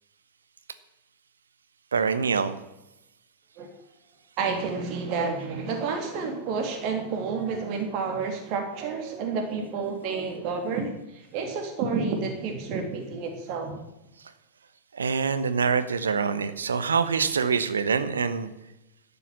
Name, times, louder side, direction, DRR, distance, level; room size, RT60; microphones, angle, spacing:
voice 1, 1.9-2.6 14.9-18.5, right 5 dB, 70° right, 11 dB, 1.1 m, -25 dB
voice 2, 4.4-13.8, right 5 dB, 40° right, 4 dB, 3.0 m, -30 dB
12.0 x 7.0 x 9.6 m, 0.92 s
figure-of-eight pair, 90°, 0 cm